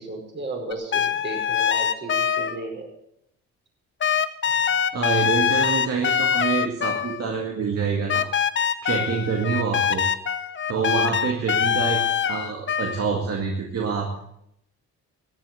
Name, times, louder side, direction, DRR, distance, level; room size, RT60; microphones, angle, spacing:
voice 1, 0.0-2.9 10.7-11.0, right 2 dB, 40° right, 2 dB, 5.0 m, -34 dB
sound 1, 0.7-2.6 4.0-7.4 8.1-13.0, left 8 dB, 40° left, 0.9 m, -23 dB
voice 2, 4.9-8.3 8.8-10.1 10.7-14.2, right 5 dB, 55° right, 1 dB, 2.2 m, -26 dB
15.0 x 8.4 x 7.8 m, 0.76 s
cardioid pair, 90°, 30 cm